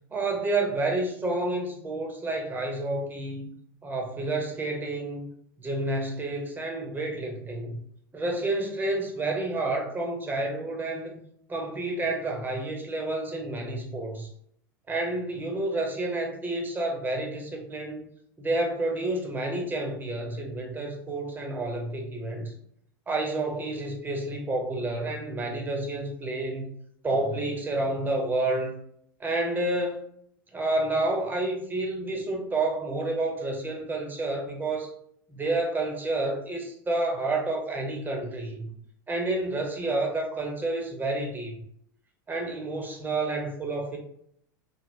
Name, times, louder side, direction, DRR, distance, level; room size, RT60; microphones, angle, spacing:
voice 1, 0.1-3.5 3.8-5.3 5.6-7.8 8.1-11.1 11.5-14.3 14.9-18.1 18.4-22.5 23.1-26.7 27.0-28.7 29.2-30.0 30.5-34.9 35.3-38.7 39.1-41.5 42.3-44.0, right 2 dB, 15° right, 1 dB, 0.9 m, -29 dB
3.4 x 2.4 x 2.5 m, 0.68 s
figure-of-eight pair, 85°, 11 cm